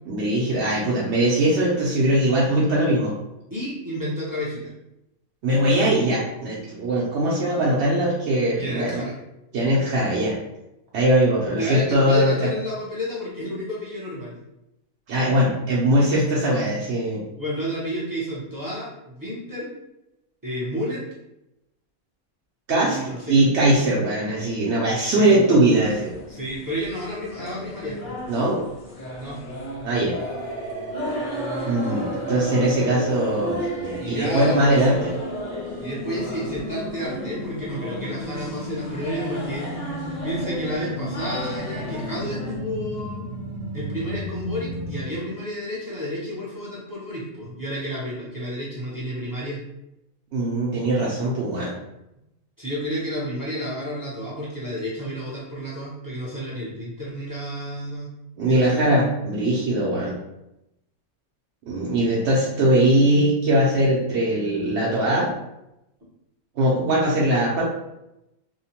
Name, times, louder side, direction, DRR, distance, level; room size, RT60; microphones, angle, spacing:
voice 1, 0.1-3.1 5.4-9.0 9.5-10.3 10.9-12.4 15.1-17.2 22.7-23.0 23.3-26.1 28.3-28.6 29.8-30.1 31.7-35.1 50.3-51.7 58.4-60.2 61.7-65.3 66.6-67.6, right 1 dB, 65° right, -5 dB, 0.7 m, -21 dB
voice 2, 3.5-4.7 8.5-9.1 11.6-14.3 17.4-19.8 20.4-21.0 22.8-23.4 25.0-25.4 26.3-28.1 29.1-29.4 34.0-34.9 35.8-39.7 40.2-43.2 43.7-49.6 52.6-58.1 58.4-58.8, equal, 25° right, -7 dB, 0.4 m, -31 dB
Student residence - Common room, 25.7-42.6, left 1 dB, 50° left, 0.6 m, -34 dB
sound 1, 30.1-45.0, right 1 dB, 85° right, 1.2 m, -34 dB
2.8 x 2.1 x 2.8 m, 0.89 s
omnidirectional pair, 1.5 m